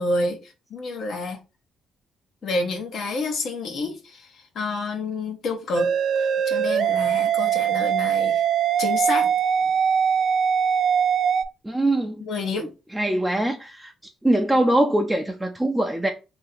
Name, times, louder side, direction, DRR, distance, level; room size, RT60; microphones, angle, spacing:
voice 1, 0.0-1.4 2.4-4.3 4.5-5.9 6.2-8.4 8.8-9.3 12.2-12.7, left 3 dB, 65° left, 1.1 m, -28 dB
sound 1, 5.7-11.4, right 8 dB, 65° right, 0.3 m, -22 dB
voice 2, 11.6-12.2 12.6-13.9 14.2-16.1, right 1 dB, 10° right, 0.5 m, -23 dB
2.9 x 2.7 x 4.0 m
cardioid pair, 90°, 0 cm